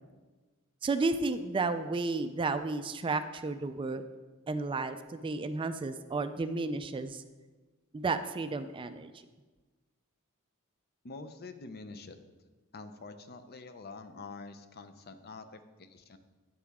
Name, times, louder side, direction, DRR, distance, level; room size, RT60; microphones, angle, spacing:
voice 1, 0.8-4.0 4.5-7.2 7.9-9.1, right 3 dB, 25° right, 10 dB, 0.3 m, -32 dB
voice 2, 11.0-12.2 12.7-16.2, left 3 dB, 50° left, 10 dB, 0.6 m, -46 dB
9.4 x 8.6 x 3.6 m, 1.3 s
head